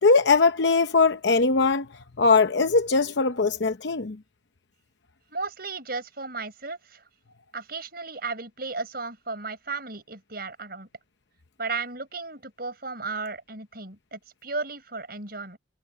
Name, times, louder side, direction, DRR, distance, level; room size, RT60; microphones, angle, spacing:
voice 1, 0.0-4.2, left 4 dB, 70° left, 0.8 m, -21 dB
voice 2, 5.3-7.0 7.5-10.9 11.6-15.6, right 3 dB, 50° right, 6.6 m, -34 dB
head